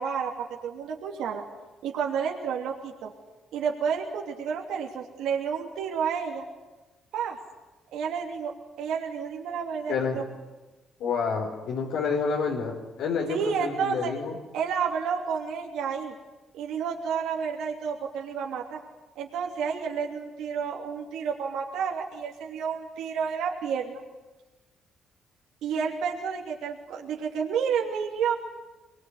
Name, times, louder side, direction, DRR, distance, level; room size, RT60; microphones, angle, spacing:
voice 1, 0.0-1.4 1.8-3.1 3.5-6.4 7.1-7.4 7.9-10.2 13.3-14.1 14.5-16.1 16.5-18.8 19.1-24.0 25.6-28.3, right 7 dB, 85° right, 0 dB, 3.0 m, -30 dB
voice 2, 9.9-10.2 11.0-14.4, left 5 dB, 85° left, -1 dB, 4.2 m, -29 dB
24.5 x 21.5 x 9.6 m, 1.2 s
cardioid pair, 100°, 0 cm